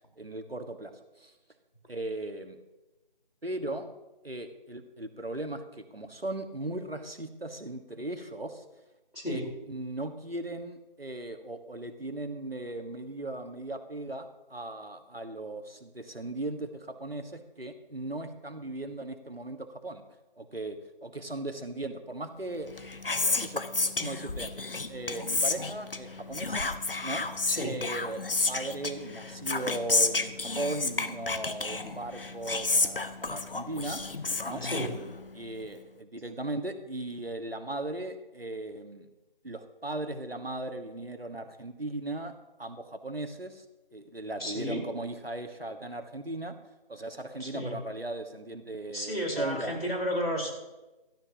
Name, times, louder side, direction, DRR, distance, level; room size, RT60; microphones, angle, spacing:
voice 1, 0.2-0.9 1.2-1.3 1.9-2.6 3.4-3.9 4.2-8.6 9.2-9.4 9.7-20.0 20.4-22.9 23.4-24.5 24.9-26.7 27.0-27.3 27.6-34.0 34.4-34.6 35.3-39.1 39.4-42.3 42.6-43.6 43.9-46.5 46.9-49.8, right 2 dB, 85° right, 7 dB, 1.6 m, -37 dB
voice 2, 9.1-9.5 27.5-27.8 34.6-34.9 44.4-44.9 47.4-47.8 48.9-50.5, equal, 85° left, 0 dB, 4.2 m, -32 dB
Whispering, 22.6-35.5, left 3 dB, 70° left, 0.9 m, -31 dB
18.0 x 12.5 x 2.9 m, 1.1 s
figure-of-eight pair, 160°, 29 cm